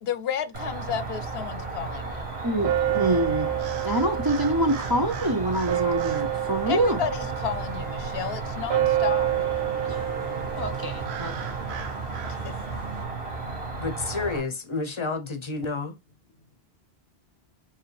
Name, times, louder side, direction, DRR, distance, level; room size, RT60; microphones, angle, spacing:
voice 1, 0.0-2.2 3.0-3.1 3.5-3.6 6.7-9.3 12.3-12.8, left 8 dB, 70° left, 0.8 m, -32 dB
Cricket, 0.5-14.4, right 3 dB, 55° right, 2.1 m, -34 dB
sound 1, 1.5-5.8 6.7-11.4, equal, 10° right, 1.5 m, -49 dB
voice 2, 2.4-3.5 3.8-7.0 9.8-10.0 10.6-11.3, right 1 dB, 30° right, 0.5 m, -25 dB
sound 2, 2.6-13.0, right 12 dB, 80° right, 0.9 m, -29 dB
voice 3, 13.8-16.0, left 4 dB, 30° left, 0.7 m, -30 dB
4.7 x 3.5 x 3.2 m
omnidirectional pair, 1.1 m